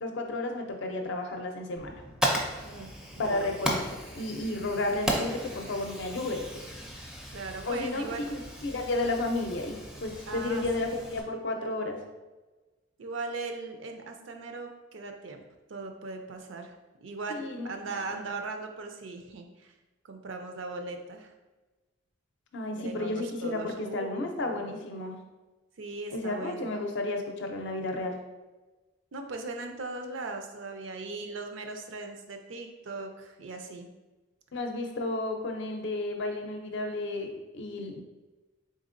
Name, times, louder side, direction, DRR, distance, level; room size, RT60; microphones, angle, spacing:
voice 1, 0.0-1.9 3.2-6.4 7.6-12.0 17.3-18.2 22.5-25.2 26.1-28.2 34.5-37.3 37.5-38.0, left 2 dB, 65° left, 3 dB, 0.5 m, -32 dB
Fire, 1.8-11.2, equal, 5° right, 0.4 m, -36 dB
voice 2, 3.2-3.5 7.3-8.3 10.3-11.0 13.0-15.4 15.7-16.8 17.0-19.7 20.0-21.3 22.7-24.8 25.8-26.8 29.1-33.9, right 3 dB, 70° right, 5 dB, 0.5 m, -39 dB
3.9 x 3.5 x 2.6 m, 1.2 s
head